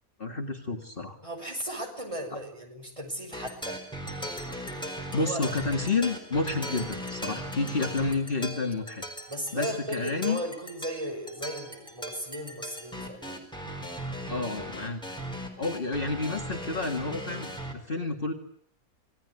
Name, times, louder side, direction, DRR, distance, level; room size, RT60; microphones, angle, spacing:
voice 1, 0.2-1.2 2.3-2.4 5.1-9.0 9.5-10.4 14.3-15.0 15.6-18.3, left 3 dB, 40° left, 3 dB, 2.3 m, -30 dB
voice 2, 1.2-3.8 5.1-5.4 9.3-13.4, equal, 20° right, 3 dB, 6.4 m, -36 dB
sound 1, 3.3-17.7, equal, 5° left, 4.4 m, -38 dB
27.5 x 19.5 x 9.5 m, 0.66 s
omnidirectional pair, 1.5 m